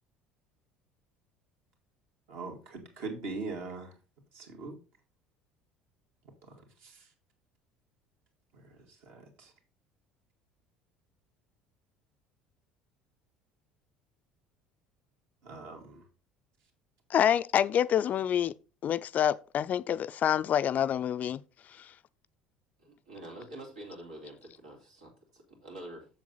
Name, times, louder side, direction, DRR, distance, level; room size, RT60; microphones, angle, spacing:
voice 1, 2.3-3.9 4.3-4.8 6.8-7.0 9.1-9.5 15.4-16.0, right 3 dB, 60° right, 2.4 m, -40 dB
voice 2, 17.1-18.5 18.8-21.4 21.8-21.9, left 9 dB, 40° left, 0.4 m, -27 dB
voice 3, 22.8-26.1, right 1 dB, 80° right, 3.1 m, -46 dB
7.4 x 7.3 x 3.9 m
figure-of-eight pair, 60°, 4 cm